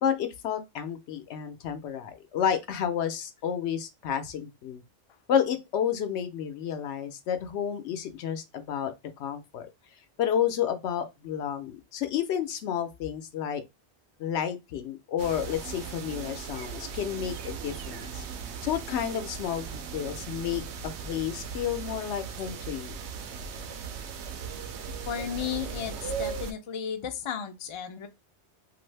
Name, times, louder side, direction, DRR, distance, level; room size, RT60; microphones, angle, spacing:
voice 1, 0.0-4.8 5.3-8.9 9.2-9.7 10.2-13.6 14.2-18.2 18.6-20.6 21.0-22.9, left 9 dB, 85° left, 0.9 m, -30 dB
sound 1, 15.2-26.5, right 6 dB, 90° right, 0.9 m, -38 dB
voice 2, 25.1-28.1, left 8 dB, 55° left, 0.3 m, -34 dB
2.6 x 2.5 x 3.2 m
omnidirectional pair, 1.1 m